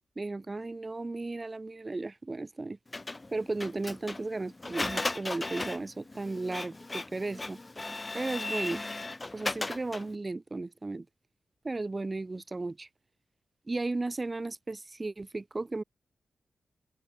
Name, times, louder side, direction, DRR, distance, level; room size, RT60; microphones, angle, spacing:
voice 1, 0.2-2.8 3.3-7.6 8.1-8.8 9.3-11.1 11.6-12.9 13.7-15.8, right 3 dB, 35° right, 1.2 m, -35 dB
Printer, 2.9-10.2, left 2 dB, 30° left, 0.8 m, -36 dB
supercardioid pair, 40°, 0 cm